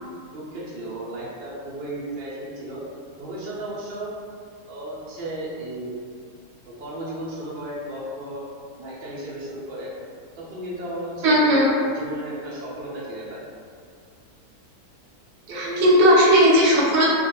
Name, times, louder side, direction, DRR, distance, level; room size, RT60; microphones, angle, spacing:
voice 1, 0.3-2.8 3.2-4.1 4.7-6.0 6.7-8.4 8.8-9.9 10.3-11.6 11.9-13.4 15.5-16.0, right 1 dB, 85° right, -6 dB, 0.4 m, -34 dB
voice 2, 11.2-11.7 15.5-17.1, equal, 60° right, -4 dB, 0.8 m, -16 dB
2.4 x 2.2 x 2.9 m, 2.2 s
omnidirectional pair, 1.6 m